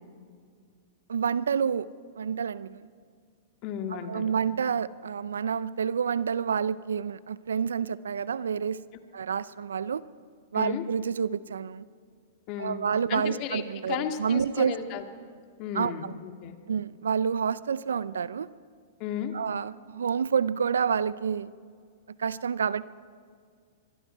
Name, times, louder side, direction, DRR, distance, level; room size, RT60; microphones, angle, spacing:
voice 1, 1.1-1.9 2.2-2.8 4.1-8.8 9.1-10.0 10.5-11.9 12.6-14.8 15.7-16.1 16.7-18.5 19.3-21.5 22.2-22.9, right 7 dB, 80° right, 19 dB, 0.5 m, -28 dB
voice 2, 3.6-4.3 10.5-10.8 12.5-12.8 13.1-15.0 15.6-16.6 19.0-19.3, left 9 dB, 45° left, 6 dB, 2.1 m, -34 dB
25.0 x 23.0 x 4.6 m, 2.1 s
hypercardioid pair, 110°, 0 cm